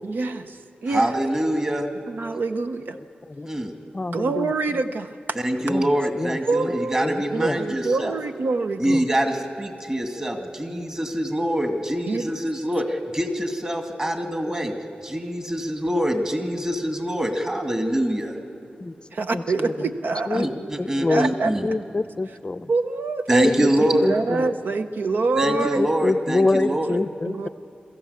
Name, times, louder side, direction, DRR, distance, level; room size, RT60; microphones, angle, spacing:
voice 1, 0.0-1.1 2.1-3.0 4.1-5.2 6.4-9.0 12.1-12.3 19.1-20.4 21.1-21.8 22.7-25.8 26.9-27.0 27.2-27.5, right 3 dB, 80° right, 7 dB, 0.7 m, -26 dB
voice 2, 0.9-1.9 3.4-3.7 5.4-8.1 8.8-14.7 15.0-18.3 20.3-21.7 23.3-24.1 25.4-27.0, equal, 25° right, 4 dB, 2.3 m, -25 dB
voice 3, 3.9-4.5 5.7-5.9 6.2-6.4 6.6-6.7 7.0-7.6 8.9-9.0 18.8-18.9 19.3-19.7 20.3-20.5 20.8-21.3 21.6-22.7 23.4-24.6 25.4-27.5, left 3 dB, 30° left, 11 dB, 0.5 m, -26 dB
22.5 x 14.5 x 8.4 m, 2.6 s
wide cardioid pair, 75°, 3 cm